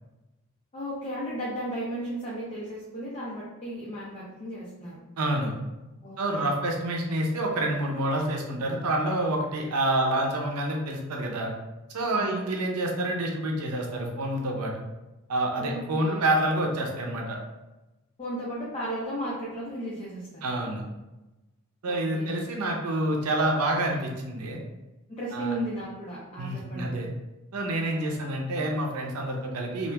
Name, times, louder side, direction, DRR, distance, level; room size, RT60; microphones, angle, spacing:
voice 1, 0.7-5.0 6.0-6.5 12.1-12.4 15.6-16.3 18.2-20.4 21.9-22.3 25.1-27.0, right 1 dB, 30° left, -7 dB, 0.5 m, -35 dB
voice 2, 5.2-5.5 6.2-11.5 11.9-14.7 15.3-17.4 20.4-20.8 21.8-24.6 25.3-25.5 26.4-27.1 27.5-29.9, right 1 dB, 85° right, 1 dB, 0.6 m, -28 dB
2.8 x 2.5 x 2.2 m, 1.0 s
head